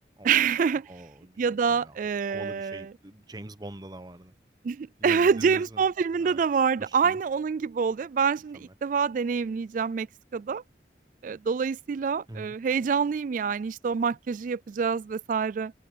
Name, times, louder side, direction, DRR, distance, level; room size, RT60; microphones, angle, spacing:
voice 1, 0.2-0.9 1.4-2.9 4.6-10.1 10.3-10.6 11.2-15.7, right 6 dB, 45° right, 0.3 m, -26 dB
voice 2, 0.9-2.0 2.3-4.3 5.0-5.8 6.2-6.4 6.8-7.2 8.5-8.7 12.3-12.5, right 1 dB, 20° right, 1.0 m, -44 dB
open air
head